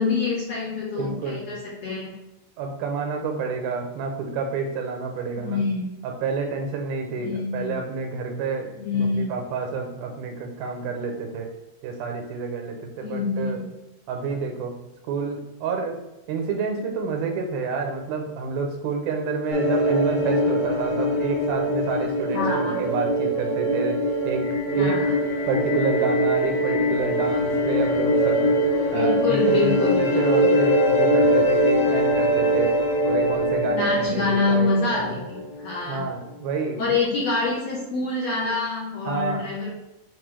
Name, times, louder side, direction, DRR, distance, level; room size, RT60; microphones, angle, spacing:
voice 1, 0.0-2.1 5.4-6.0 7.2-7.8 8.8-9.4 13.0-13.7 22.3-22.8 24.7-25.1 28.9-30.5 33.7-36.0 36.8-39.7, left 3 dB, 65° left, -4 dB, 1.7 m, -26 dB
voice 2, 1.0-1.5 2.6-5.6 6.0-11.5 11.8-13.6 14.1-14.8 15.1-16.0 16.3-25.0 25.5-28.6 28.9-32.7 33.0-35.1 35.9-36.9 39.1-39.5, right 5 dB, 90° right, 4 dB, 2.8 m, -29 dB
sound 1, 19.5-35.9, equal, 80° left, 3.1 m, -22 dB
7.7 x 4.0 x 3.3 m, 0.98 s
omnidirectional pair, 4.2 m